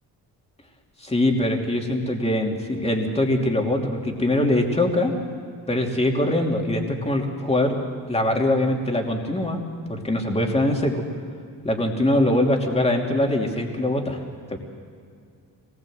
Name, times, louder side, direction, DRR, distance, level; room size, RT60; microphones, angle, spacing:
voice 1, 1.0-5.1 5.7-7.8 8.1-9.6 9.9-11.0 11.6-14.2 14.5-14.6, left 1 dB, 15° left, 1 dB, 2.8 m, -22 dB
25.0 x 20.0 x 7.8 m, 2.4 s
wide cardioid pair, 130°, 37 cm